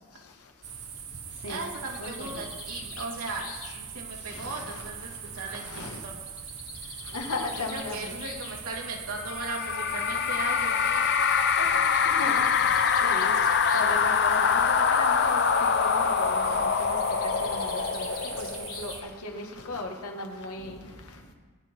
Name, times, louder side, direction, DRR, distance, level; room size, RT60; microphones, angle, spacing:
sound 1, 0.6-19.0, right 7 dB, 65° right, 1.3 m, -41 dB
Bird, 1.4-5.2 6.3-8.6 9.7-9.8 10.1-10.2 10.5-10.6 11.6-14.0 14.3-14.8 16.9-19.3, left 7 dB, 70° left, 1.8 m, -45 dB
voice 1, 1.5-6.2 6.8-7.0 7.7-12.1, right 3 dB, 80° right, -1 dB, 2.7 m, -38 dB
voice 2, 2.0-2.4 4.2-6.0 7.0-8.2 12.0-21.2, left 2 dB, 85° left, 2 dB, 2.0 m, -38 dB
sound 2, 9.2-18.9, left 6 dB, 50° left, 0.7 m, -24 dB
19.5 x 10.0 x 4.6 m, 1.3 s
head